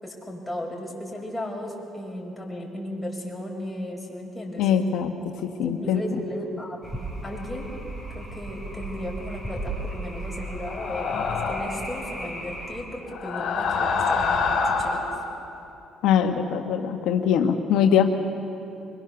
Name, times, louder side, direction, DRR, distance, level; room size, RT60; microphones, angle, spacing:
voice 1, 0.0-4.7 5.6-6.8 7.2-7.7 8.1-11.1 11.5-15.0, left 1 dB, 10° left, -1 dB, 5.9 m, -35 dB
voice 2, 4.6-5.1 5.6-6.0 16.0-18.1, left 8 dB, 80° left, 4 dB, 1.3 m, -22 dB
sound 1, 6.8-12.8, right 1 dB, 15° right, 7.3 m, -36 dB
sound 2, 10.6-11.8 13.1-15.2, left 4 dB, 65° left, 4.0 m, -26 dB
25.0 x 21.5 x 7.0 m, 2.9 s
cardioid pair, 90°, 0 cm